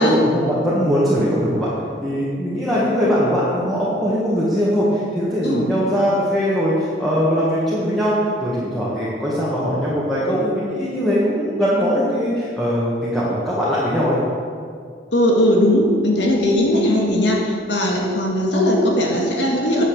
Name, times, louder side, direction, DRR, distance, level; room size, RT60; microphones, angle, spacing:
voice 1, 0.0-1.7 2.0-8.2 8.4-14.2, equal, ahead, -9 dB, 1.7 m, -20 dB
voice 2, 15.1-19.8, left 1 dB, 70° left, -1 dB, 2.0 m, -18 dB
9.6 x 6.9 x 7.1 m, 2.2 s
head